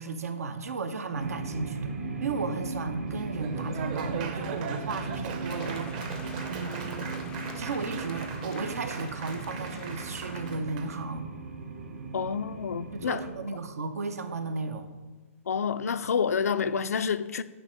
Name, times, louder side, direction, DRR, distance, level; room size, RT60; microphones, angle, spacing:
voice 1, 0.0-1.9 2.2-7.1 7.6-11.3 12.9-14.9, right 4 dB, 85° right, 0.9 m, -35 dB
sound 1, 1.1-13.4, right 3 dB, 65° right, 1.2 m, -37 dB
Laughter / Applause, 3.1-11.0, right 6 dB, 35° right, 0.7 m, -40 dB
sound 2, 5.4-10.6, left 6 dB, 10° left, 0.3 m, -48 dB
voice 2, 12.1-13.2 15.5-17.4, left 6 dB, 90° left, 0.4 m, -28 dB
9.2 x 3.4 x 6.3 m
hypercardioid pair, 155°, 8 cm